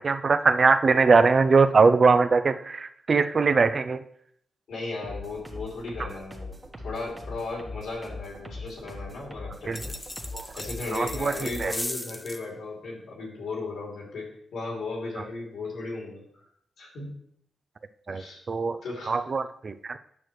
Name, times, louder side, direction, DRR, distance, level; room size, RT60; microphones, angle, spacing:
voice 1, 0.0-4.0 9.7-9.8 10.3-10.5 10.9-11.7 15.2-15.3 18.1-18.8 19.1-20.0, right 4 dB, 50° right, 11 dB, 0.5 m, -21 dB
voice 2, 4.7-6.6 6.8-9.8 10.6-16.4 16.8-17.1 18.1-18.4 18.8-19.1, left 3 dB, 85° left, -2 dB, 2.8 m, -36 dB
sound 1, 5.0-11.8, left 2 dB, 25° right, 1.4 m, -41 dB
sound 2, 9.7-12.4, left 1 dB, 15° left, 0.7 m, -37 dB
8.9 x 6.2 x 3.1 m, 0.68 s
cardioid pair, 70°, 0 cm